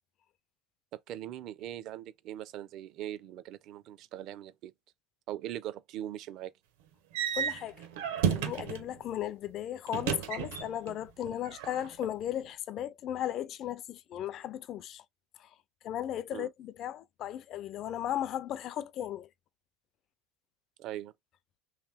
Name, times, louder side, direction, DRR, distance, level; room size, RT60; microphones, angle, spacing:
voice 1, 0.9-4.7 5.3-6.5 16.3-16.5 20.8-21.1, right 12 dB, 35° right, 0.4 m, -41 dB
sound 1, 7.1-8.9 9.9-10.9 11.2-12.0, right 8 dB, 65° right, 0.9 m, -32 dB
voice 2, 7.3-7.9 8.3-15.0 15.4-15.5 15.8-19.3, left 11 dB, 30° left, 0.3 m, -36 dB
3.1 x 3.0 x 3.3 m
supercardioid pair, 180°, 0 cm